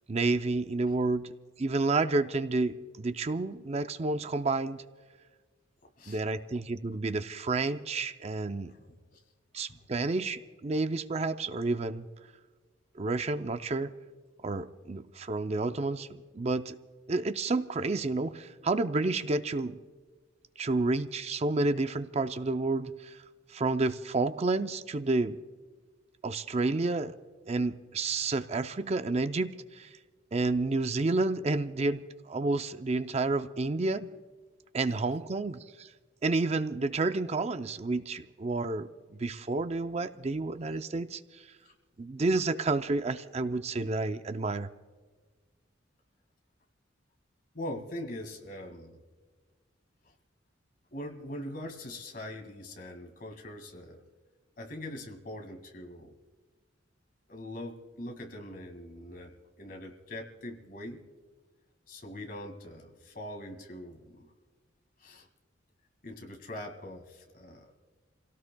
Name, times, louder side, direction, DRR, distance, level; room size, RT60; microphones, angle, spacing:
voice 1, 0.1-1.3 1.6-4.8 6.1-8.7 9.5-12.1 13.0-13.9 14.4-16.8 17.1-19.8 20.6-23.2 23.5-25.4 26.2-27.2 27.5-29.9 30.3-34.1 34.7-35.9 36.2-38.9 39.2-41.2 42.0-44.7, right 3 dB, 35° right, 10 dB, 0.5 m, -30 dB
voice 2, 8.7-9.2 9.5-9.9 41.7-41.8 47.5-49.0 50.0-50.1 50.9-54.0 54.6-56.1 57.3-61.0 61.9-64.3 65.0-65.3 66.0-67.7, left 1 dB, 50° left, 4 dB, 2.0 m, -42 dB
30.0 x 17.5 x 2.2 m, 1.4 s
head